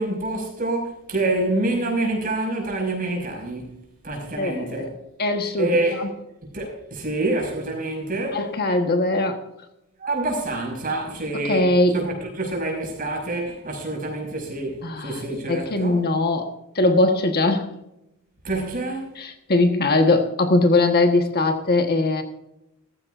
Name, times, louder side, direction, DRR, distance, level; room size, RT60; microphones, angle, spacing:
voice 1, 0.0-3.8 4.0-4.9 5.5-6.1 6.5-8.5 10.0-16.0 18.4-19.2, right 2 dB, 40° right, 0 dB, 5.5 m, -27 dB
voice 2, 4.3-4.9 5.2-5.7 6.0-6.1 8.3-9.4 11.3-12.0 14.8-15.2 15.5-17.7 19.2-22.2, left 2 dB, 45° left, 5 dB, 1.3 m, -21 dB
15.5 x 14.5 x 2.5 m, 0.85 s
head